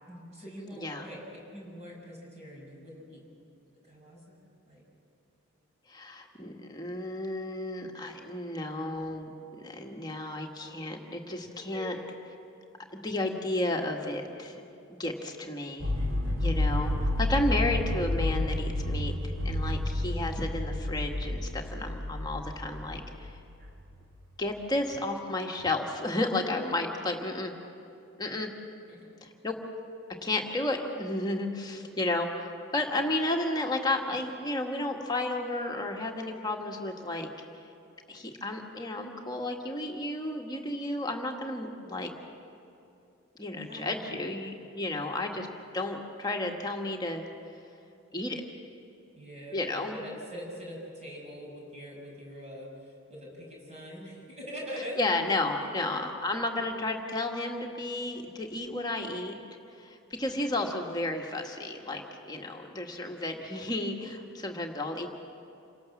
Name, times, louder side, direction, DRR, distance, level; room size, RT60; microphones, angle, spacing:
voice 1, 0.1-3.2 3.8-4.8 11.5-11.9 28.9-29.1 43.6-44.2 45.2-45.4 49.2-55.0 55.6-55.7, equal, 30° right, -2 dB, 6.5 m, -44 dB
voice 2, 5.9-9.3 9.6-12.0 13.0-14.6 14.9-15.9 16.4-23.3 24.4-27.5 28.2-28.5 29.2-29.6 30.2-37.3 38.1-42.1 43.4-45.5 45.7-47.2 48.1-48.4 49.5-50.0 55.0-59.4 59.8-65.1, left 2 dB, 20° left, 1 dB, 1.6 m, -32 dB
sound 1, 15.8-24.0, left 1 dB, 65° right, 2.6 m, -30 dB
27.5 x 18.0 x 7.2 m, 2.6 s
head